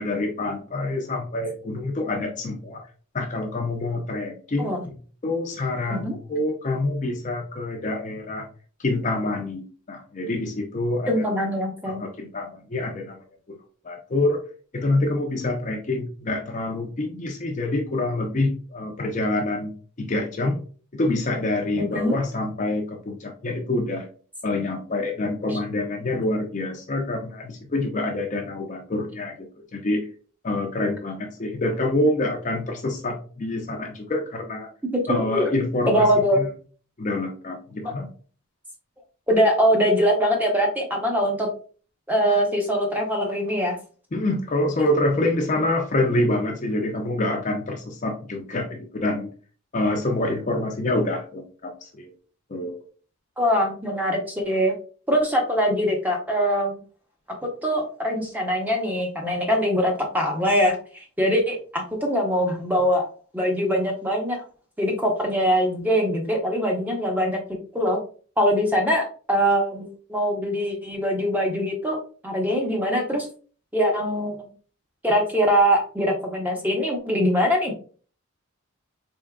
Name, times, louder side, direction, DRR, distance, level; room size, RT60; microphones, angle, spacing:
voice 1, 0.0-2.8 3.1-5.0 5.2-8.5 8.8-11.2 11.9-13.2 13.5-13.6 13.8-14.4 14.7-19.7 20.0-20.6 20.9-24.1 24.4-30.0 30.4-34.7 35.1-36.1 36.4-36.5 37.0-38.1 44.1-49.3 49.7-52.1 52.5-52.8, left 2 dB, 35° left, 3 dB, 0.5 m, -26 dB
voice 2, 11.1-12.0 21.8-22.2 34.9-35.5 35.9-36.4 39.3-41.5 42.1-43.8 53.4-54.7 55.1-56.8 57.6-63.1 63.3-64.4 64.8-67.4 67.7-68.0 68.4-72.0 72.2-73.3 73.7-74.5 75.0-77.7, equal, 10° right, 1 dB, 0.6 m, -22 dB
3.6 x 3.6 x 2.2 m, 0.40 s
head